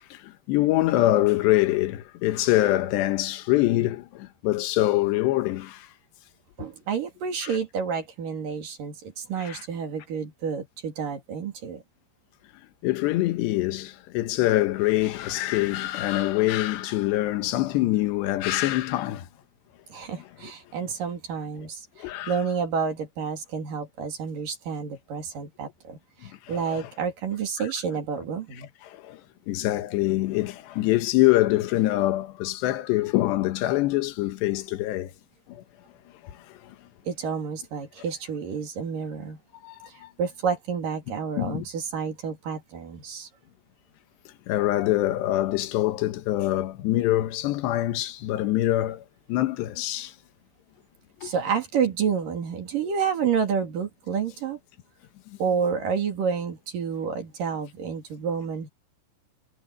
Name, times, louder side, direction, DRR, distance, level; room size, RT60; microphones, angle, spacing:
voice 1, 0.0-5.9 9.4-9.6 12.8-19.3 22.0-22.3 26.2-26.3 26.7-26.8 28.9-29.2 29.5-35.1 35.5-35.6 36.6-36.7 39.6-40.1 41.4-41.7 44.5-49.0 49.3-50.1 51.2-51.3, left 16 dB, 75° left, 3.2 m, -24 dB
voice 2, 6.6-11.8 19.9-28.7 37.1-39.4 39.9-43.3 51.2-54.6 55.4-58.7, right 6 dB, 55° right, 4.0 m, -29 dB
omnidirectional pair, 5.0 m